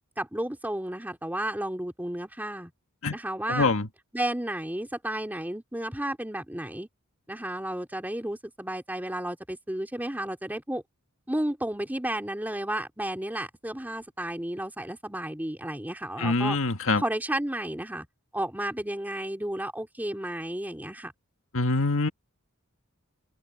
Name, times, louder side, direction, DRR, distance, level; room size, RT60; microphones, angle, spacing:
voice 1, 0.2-2.7 3.1-3.7 4.1-6.9 7.3-10.8 11.3-16.6 17.0-18.1 18.3-21.1, right 1 dB, 10° right, 3.0 m, -32 dB
voice 2, 3.5-3.9 16.2-17.0 21.5-22.1, left 3 dB, 65° left, 1.9 m, -24 dB
head